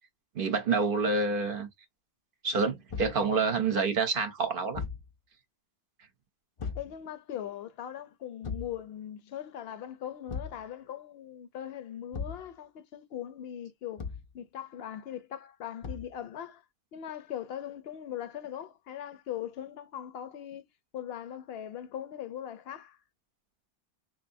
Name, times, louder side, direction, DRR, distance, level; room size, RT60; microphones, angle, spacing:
voice 1, 0.4-1.7 2.4-4.8, right 4 dB, 55° right, 0.8 m, -27 dB
Thump thud, 2.9-3.2 4.7-5.1 6.6-6.9 8.4-8.8 10.3-10.6 12.1-12.5 14.0-14.3 15.8-16.2, left 5 dB, 45° left, 0.4 m, -37 dB
voice 2, 6.7-14.1 14.3-16.6 16.9-20.7 20.9-23.0, left 10 dB, 65° left, 0.8 m, -40 dB
3.9 x 2.7 x 2.6 m
omnidirectional pair, 1.2 m